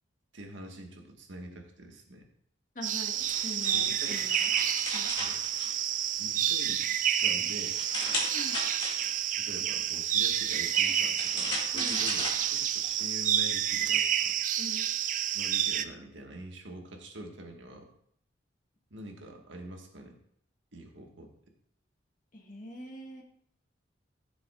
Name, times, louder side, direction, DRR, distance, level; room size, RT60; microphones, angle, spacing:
voice 1, 0.3-2.3 3.7-4.2 5.1-5.4 6.2-7.8 9.3-14.3 14.7-14.8 15.3-17.9 18.9-20.1 20.7-21.3, right 1 dB, 80° right, 2 dB, 1.5 m, -45 dB
voice 2, 2.7-4.5 4.9-5.1 8.3-8.6 11.7-12.0 14.6-14.8 22.3-23.2, left 1 dB, 45° left, 1 dB, 1.5 m, -43 dB
sound 1, 2.8-15.8, right 10 dB, 40° right, 0.4 m, -29 dB
sound 2, 2.9-6.3 6.7-9.4 10.3-13.0, left 2 dB, 25° left, 2.0 m, -38 dB
13.5 x 7.0 x 2.4 m, 0.67 s
head